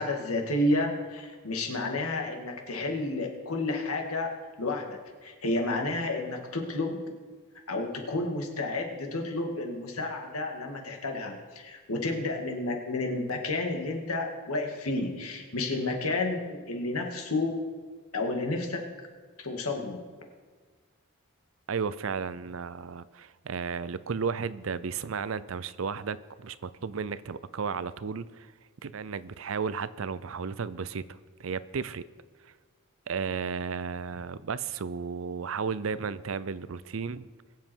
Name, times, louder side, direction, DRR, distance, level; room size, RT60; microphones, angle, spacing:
voice 1, 0.0-4.3 4.6-7.0 7.7-17.6 18.1-18.8 19.4-20.0, left 2 dB, 90° left, 2 dB, 2.1 m, -31 dB
voice 2, 21.7-28.5 28.8-32.0 33.1-37.3, right 5 dB, 70° right, 16 dB, 0.5 m, -34 dB
21.5 x 7.6 x 4.6 m, 1.5 s
head